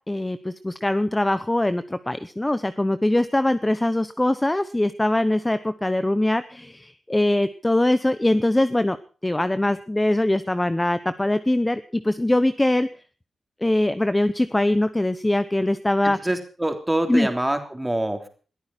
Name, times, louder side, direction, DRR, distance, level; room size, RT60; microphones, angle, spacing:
voice 1, 0.1-9.0 9.2-12.9 13.6-16.2 17.1-17.3, left 1 dB, 10° left, 12 dB, 0.8 m, -22 dB
voice 2, 16.0-18.3, right 1 dB, 10° right, 6 dB, 3.3 m, -25 dB
21.5 x 14.5 x 4.3 m, 0.39 s
wide cardioid pair, 145°, 0 cm